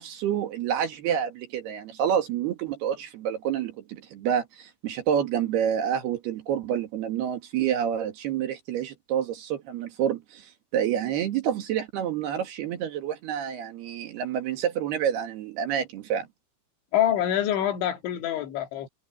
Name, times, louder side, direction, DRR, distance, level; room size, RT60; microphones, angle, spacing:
voice 1, 0.0-16.3, right 9 dB, 65° right, 3.6 m, -28 dB
voice 2, 16.9-18.9, left 11 dB, 75° left, 4.6 m, -25 dB
omnidirectional pair, 5.4 m